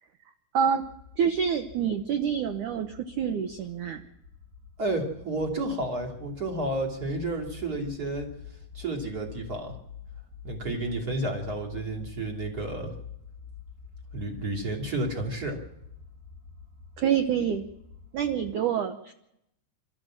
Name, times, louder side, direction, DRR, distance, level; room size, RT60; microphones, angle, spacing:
sound 1, 0.8-18.6, left 7 dB, 45° right, 3.8 m, -47 dB
voice 1, 1.2-4.0 17.0-17.6 18.1-19.1, right 8 dB, 85° right, 7 dB, 1.8 m, -27 dB
voice 2, 4.8-8.3 8.7-9.7 10.4-12.9 14.1-15.6, right 2 dB, 25° right, 1 dB, 2.6 m, -31 dB
26.0 x 14.0 x 7.4 m, 0.80 s
omnidirectional pair, 5.0 m